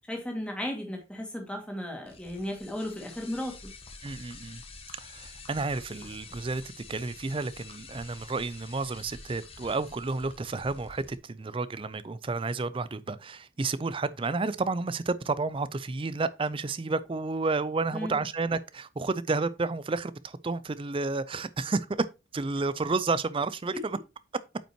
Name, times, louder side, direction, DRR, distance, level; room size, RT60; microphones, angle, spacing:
voice 1, 0.1-3.7 17.9-18.2, left 1 dB, 5° left, 2.1 m, -35 dB
sound 1, 2.0-11.2, left 3 dB, 25° left, 1.2 m, -48 dB
voice 2, 4.0-4.6 5.0-6.6 6.9-22.1 22.3-24.0, right 3 dB, 25° right, 0.4 m, -31 dB
8.7 x 5.5 x 2.9 m
head